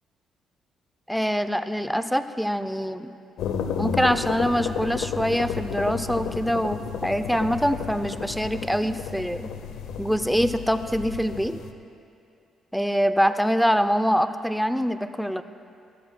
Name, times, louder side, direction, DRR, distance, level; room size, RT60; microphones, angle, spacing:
voice 1, 1.1-3.1 3.8-9.5 10.0-11.6 12.7-15.4, equal, ahead, 10 dB, 0.5 m, -24 dB
sound 1, 3.4-11.7, left 7 dB, 85° left, 0.6 m, -32 dB
19.5 x 13.5 x 2.2 m, 2.5 s
cardioid pair, 90°, 0 cm